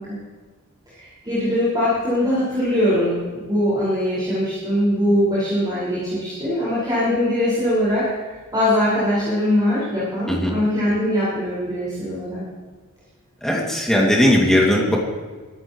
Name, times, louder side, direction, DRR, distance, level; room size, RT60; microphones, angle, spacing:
voice 1, 0.9-8.0 8.5-12.4, left 1 dB, 20° right, -10 dB, 5.6 m, -21 dB
voice 2, 13.4-15.0, left 1 dB, ahead, -3 dB, 2.5 m, -18 dB
24.5 x 13.0 x 3.2 m, 1.4 s
head